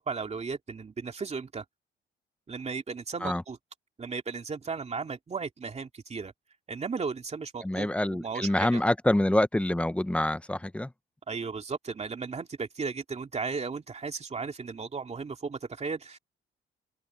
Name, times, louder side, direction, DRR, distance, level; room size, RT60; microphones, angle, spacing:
voice 1, 0.0-1.6 2.5-3.6 4.0-6.3 6.7-8.8 11.3-16.2, right 5 dB, 35° right, 2.6 m, -35 dB
voice 2, 7.6-10.9, left 1 dB, 5° left, 0.8 m, -26 dB
cardioid pair, 90°, 20 cm